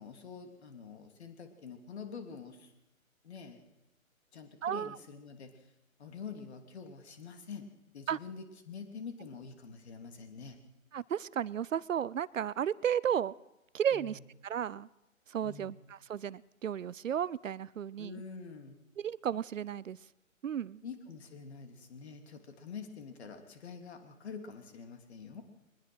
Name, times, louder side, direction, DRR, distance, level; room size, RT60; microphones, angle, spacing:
voice 1, 0.0-2.7 3.2-3.6 4.3-5.7 6.0-7.7 7.9-10.6 13.9-14.2 15.4-15.8 18.0-18.8 20.8-25.4, left 5 dB, 50° left, 6 dB, 3.1 m, -46 dB
voice 2, 4.6-5.0 8.1-8.2 10.9-13.3 13.7-14.9 15.3-18.2 19.0-20.0 20.4-20.8, right 9 dB, 65° right, 21 dB, 0.6 m, -33 dB
22.0 x 20.0 x 6.2 m, 0.95 s
hypercardioid pair, 150°, 41 cm